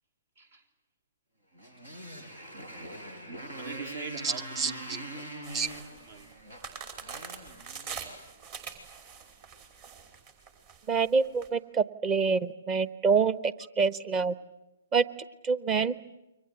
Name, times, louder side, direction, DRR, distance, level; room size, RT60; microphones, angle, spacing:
Motorcycle, 1.5-8.1, right 1 dB, 80° right, 6.2 m, -43 dB
voice 1, 3.5-5.3 6.1-6.3, right 5 dB, 60° right, 6 dB, 3.7 m, -43 dB
voice 2, 4.2-4.7 5.5-5.7 10.9-14.3 14.9-15.0 15.4-16.0, right 5 dB, 25° right, 16 dB, 1.2 m, -26 dB
sound 1, 5.4-11.5, right 6 dB, 40° right, 5.6 m, -44 dB
29.5 x 24.0 x 8.3 m, 0.97 s
hypercardioid pair, 130°, 0 cm